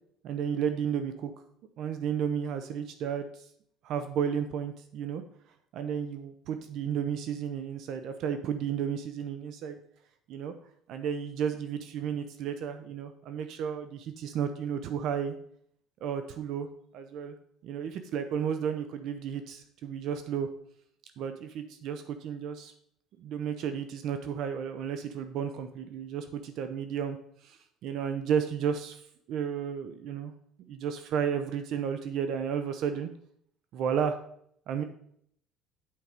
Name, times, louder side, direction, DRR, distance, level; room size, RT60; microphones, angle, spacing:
voice 1, 0.2-1.3 1.8-3.3 3.8-5.2 5.7-9.8 10.3-10.5 10.9-15.4 16.0-16.7 16.9-17.4 17.6-20.5 21.2-22.7 23.2-27.2 27.4-29.0 29.3-30.3 30.7-33.1 33.7-34.2 34.7-34.8, right 8 dB, 60° right, 8 dB, 0.7 m, -32 dB
8.6 x 4.7 x 5.2 m, 0.67 s
cardioid pair, 140°, 0 cm